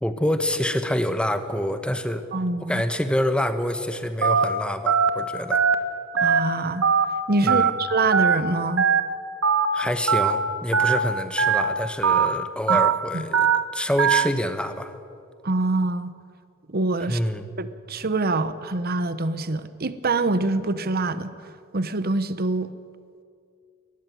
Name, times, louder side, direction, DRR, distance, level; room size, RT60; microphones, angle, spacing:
voice 1, 0.0-2.2 2.6-5.6 7.4-7.7 9.7-14.9 17.0-17.5, left 1 dB, 5° left, 9 dB, 1.0 m, -26 dB
voice 2, 2.3-2.8 6.1-6.9 7.3-8.9 12.7-12.9 13.1-13.2 15.4-16.1 16.7-17.2 17.6-21.3 21.7-22.7, right 2 dB, 45° right, 13 dB, 0.9 m, -25 dB
Telephone, 4.2-4.4 4.9-5.1 5.5-5.7 6.2-6.4 6.8-7.1 7.5-7.7 8.1-8.4 8.8-9.0 9.4-9.7 10.1-10.3 10.7-11.0 11.4-11.6 12.0-12.3 12.7-12.9 13.3-13.6 14.0-14.2, right 7 dB, 80° right, 1.5 m, -19 dB
19.5 x 14.5 x 9.3 m, 2.3 s
head